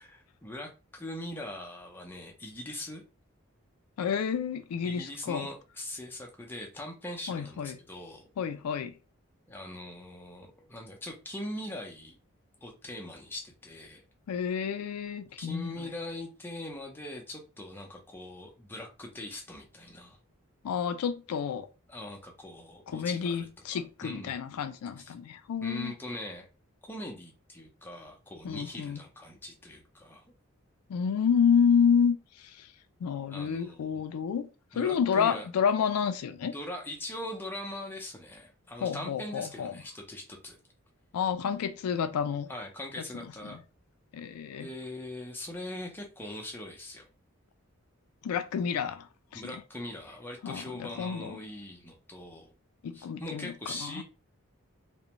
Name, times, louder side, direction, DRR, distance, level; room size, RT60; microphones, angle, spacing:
voice 1, 0.0-3.0 4.8-8.3 9.5-12.2 12.6-14.0 15.4-20.2 21.9-24.4 25.0-25.1 25.6-26.5 26.9-30.2 33.3-34.1 34.7-35.5 36.4-40.6 42.5-43.6 44.6-47.1 49.3-52.5 52.9-54.0, left 1 dB, 10° left, 0.5 m, -41 dB
voice 2, 4.0-5.5 7.3-7.8 8.4-8.9 14.3-15.7 20.6-21.7 22.9-25.9 28.4-29.0 30.9-32.7 33.0-34.5 34.7-36.5 38.8-39.7 41.1-42.5 43.4-43.6 44.1-44.7 48.2-49.1 49.3-49.6 50.4-51.4 52.8-54.0, left 7 dB, 85° left, 0.3 m, -29 dB
2.5 x 2.1 x 2.9 m
head